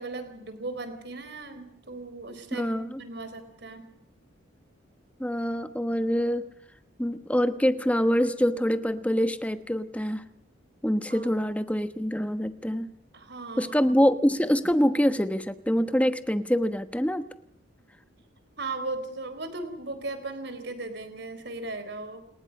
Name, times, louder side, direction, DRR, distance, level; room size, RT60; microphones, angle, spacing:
voice 1, 0.0-2.7 3.0-3.9 11.1-11.3 13.1-13.7 18.6-22.2, right 2 dB, 55° right, 9 dB, 4.2 m, -37 dB
voice 2, 2.5-3.0 5.2-6.5 7.0-10.2 10.8-12.9 13.6-17.3, equal, 5° left, 10 dB, 1.2 m, -25 dB
29.5 x 20.0 x 5.5 m, 0.70 s
head